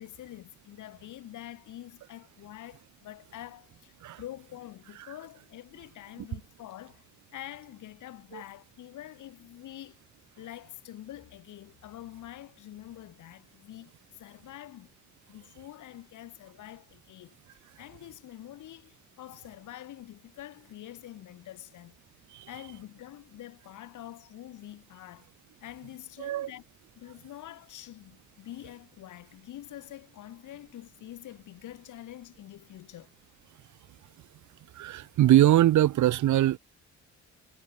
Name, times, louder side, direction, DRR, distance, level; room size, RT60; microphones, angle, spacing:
voice 1, 0.0-7.1 7.3-10.0 10.4-14.9 15.3-21.9 22.5-25.3 25.6-26.6 27.0-33.1, left 13 dB, 80° left, 3.7 m, -46 dB
voice 2, 26.2-26.5 34.7-36.6, right 13 dB, 75° right, 1.4 m, -22 dB
cardioid pair, 90°, 30 cm